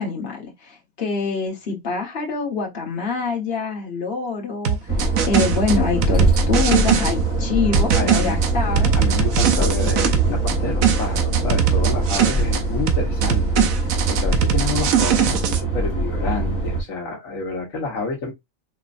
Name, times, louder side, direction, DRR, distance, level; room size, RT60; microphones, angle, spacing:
voice 1, 0.0-8.9, left 5 dB, 45° left, 1.5 m, -25 dB
sound 1, 4.6-7.1 7.7-10.6 10.8-12.6 12.9-15.6, right 8 dB, 75° right, 1.1 m, -21 dB
sound 2, 4.9-16.8, right 2 dB, 10° right, 1.6 m, -22 dB
voice 2, 7.9-8.4 8.9-13.7 14.1-18.3, left 3 dB, 75° left, 1.5 m, -29 dB
5.1 x 3.0 x 2.5 m
omnidirectional pair, 1.4 m